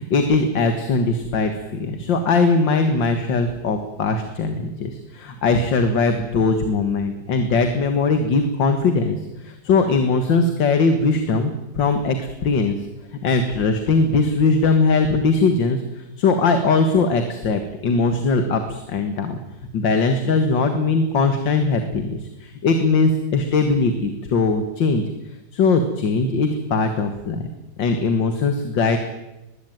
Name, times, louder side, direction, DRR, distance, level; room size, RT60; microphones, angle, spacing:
voice 1, 0.0-12.8 13.2-19.4 19.7-25.0 25.5-27.4 27.8-29.0, left 3 dB, 90° left, 7 dB, 2.3 m, -20 dB
21.5 x 15.5 x 9.2 m, 0.99 s
omnidirectional pair, 2.0 m